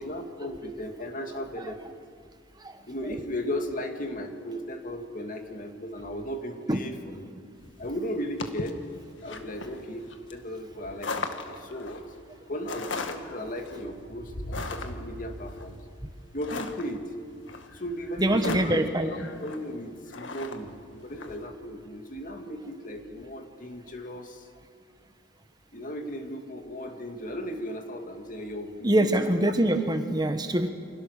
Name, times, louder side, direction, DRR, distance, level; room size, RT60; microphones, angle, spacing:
voice 1, 0.0-1.8 2.9-7.2 7.8-8.8 9.2-12.0 12.5-15.8 16.3-17.1 17.7-24.5 25.7-29.5, equal, 45° left, 4 dB, 2.3 m, -36 dB
sound 1, 7.6-21.4, left 3 dB, 80° left, 1.8 m, -39 dB
voice 2, 18.2-19.1 28.8-30.7, right 1 dB, 20° right, 7 dB, 1.3 m, -24 dB
29.0 x 25.5 x 6.6 m, 2.1 s
head